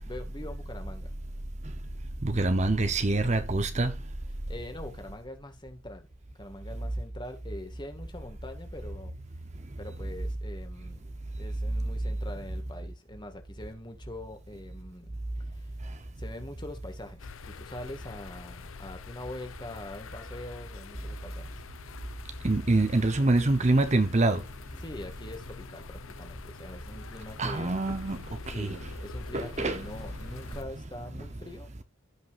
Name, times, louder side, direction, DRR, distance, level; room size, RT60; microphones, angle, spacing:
voice 1, 0.1-1.1 3.1-3.2 4.5-6.1 6.4-9.1 9.8-11.0 11.4-15.2 15.5-15.7 16.2-21.6 24.8-27.8 28.5-31.8, left 1 dB, 20° left, 1.8 m, -43 dB
voice 2, 2.2-3.9 22.4-24.4 27.4-28.8 29.3-29.8, right 2 dB, 35° right, 0.8 m, -25 dB
sound 1, 17.2-30.6, left 3 dB, 75° left, 0.8 m, -44 dB
16.5 x 5.6 x 2.5 m
head